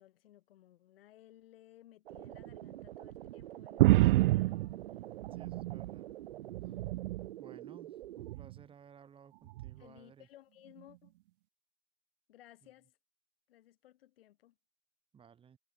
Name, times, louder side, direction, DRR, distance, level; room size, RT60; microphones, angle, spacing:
voice 1, 0.0-4.8 6.6-6.9 9.8-11.1 12.3-13.0 13.5-14.6, left 14 dB, 70° left, 6.2 m, -60 dB
sound 1, 2.1-8.4, right 14 dB, 80° right, 1.0 m, -47 dB
sound 2, 3.8-6.0 6.4-7.3 8.2-8.6 9.6-9.7, right 18 dB, 60° right, 0.6 m, -28 dB
voice 2, 4.6-6.1 7.4-10.3 15.1-15.6, right 7 dB, 15° right, 8.0 m, -58 dB
supercardioid pair, 150°, 30 cm